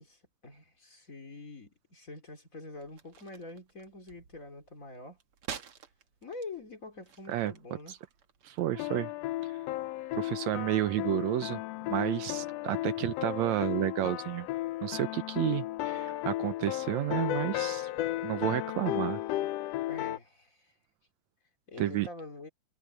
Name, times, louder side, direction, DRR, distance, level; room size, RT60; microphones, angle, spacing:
voice 1, 0.0-5.2 6.2-8.0 19.9-20.7 21.7-22.5, left 3 dB, 25° left, 2.7 m, -45 dB
sound 1, 2.7-8.6, right 7 dB, 50° right, 2.2 m, -49 dB
voice 2, 8.4-9.1 10.1-11.6 11.9-14.5 14.8-17.9 18.2-19.2 21.8-22.1, right 14 dB, 75° right, 1.8 m, -31 dB
sound 2, 8.7-20.2, left 15 dB, 85° left, 1.4 m, -34 dB
omnidirectional pair, 3.6 m